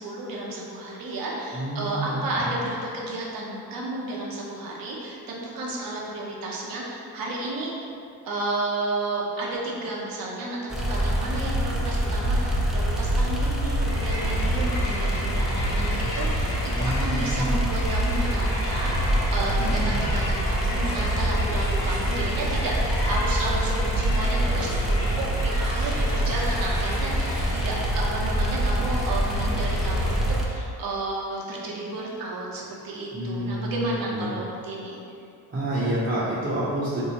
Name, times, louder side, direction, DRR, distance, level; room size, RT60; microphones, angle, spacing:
voice 1, 0.0-7.7 8.2-35.0, right 2 dB, 60° right, -3 dB, 0.8 m, -32 dB
voice 2, 1.5-2.5 16.7-17.5 19.6-20.0 33.1-34.3 35.5-37.0, right 1 dB, 30° right, -10 dB, 0.8 m, -29 dB
sound 1, 10.7-30.5, right 1 dB, ahead, 0.4 m, -25 dB
Crowd, 13.8-30.5, left 1 dB, 75° left, 1.1 m, -34 dB
3.0 x 2.7 x 2.9 m, 2.5 s
supercardioid pair, 70°, 39 cm